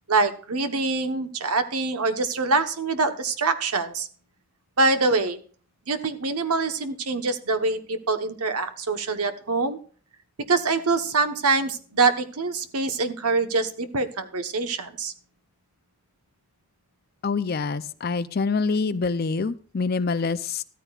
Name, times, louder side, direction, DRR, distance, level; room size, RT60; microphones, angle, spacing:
voice 1, 0.1-4.1 4.8-5.4 5.9-9.8 10.5-15.1, right 3 dB, 90° right, 8 dB, 1.1 m, -24 dB
voice 2, 17.2-20.6, left 4 dB, 45° left, 14 dB, 0.5 m, -26 dB
14.5 x 13.5 x 2.4 m, 0.43 s
head